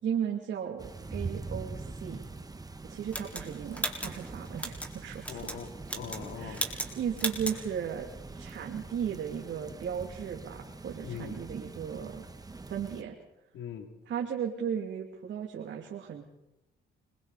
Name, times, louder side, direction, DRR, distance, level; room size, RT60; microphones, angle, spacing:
voice 1, 0.0-2.2 2.8-5.5 6.4-8.1 8.3-12.2 12.7-13.2 14.1-16.2, right 8 dB, 65° right, 0 dB, 2.8 m, -36 dB
sound 1, 0.8-13.0, right 3 dB, 20° right, 1.5 m, -43 dB
sound 2, 3.1-4.9 5.2-5.6 5.8-6.3 6.5-6.9 7.2-7.6, equal, 5° left, 4.7 m, -35 dB
voice 2, 5.3-6.6 11.0-11.4 13.5-13.9, left 8 dB, 85° left, 4 dB, 3.0 m, -41 dB
29.0 x 23.0 x 4.2 m, 0.88 s
cardioid pair, 90°, 20 cm